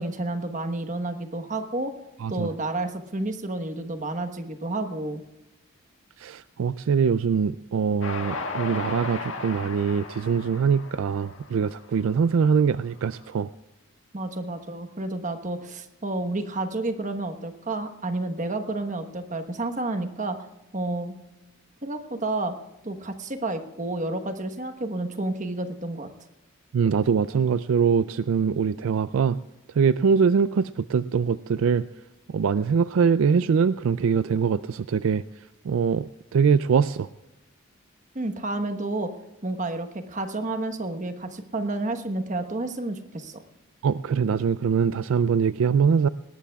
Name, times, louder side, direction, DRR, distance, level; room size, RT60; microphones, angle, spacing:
voice 1, 0.0-1.9 2.3-5.2 14.1-20.4 20.7-21.1 21.8-22.6 22.8-26.1 38.1-39.1 39.4-43.4, right 2 dB, 35° right, 8 dB, 1.2 m, -30 dB
voice 2, 6.2-13.5 26.7-29.4 29.8-31.8 32.3-35.2 35.7-37.1 43.8-46.1, right 6 dB, 70° right, 15 dB, 0.3 m, -23 dB
Train, 8.0-12.4, left 3 dB, 60° left, 1.9 m, -35 dB
20.0 x 18.5 x 2.4 m, 1.0 s
head